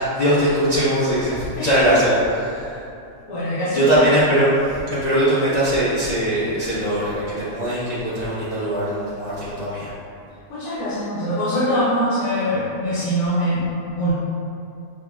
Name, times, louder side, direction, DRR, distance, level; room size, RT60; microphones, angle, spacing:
voice 1, 0.0-2.9 3.7-9.9, right 1 dB, 40° left, -12 dB, 0.6 m, -20 dB
voice 2, 1.6-1.9 3.3-4.0 10.5-13.7 14.0-14.1, equal, 80° left, -12 dB, 1.3 m, -23 dB
6.0 x 2.0 x 2.3 m, 2.6 s
omnidirectional pair, 1.6 m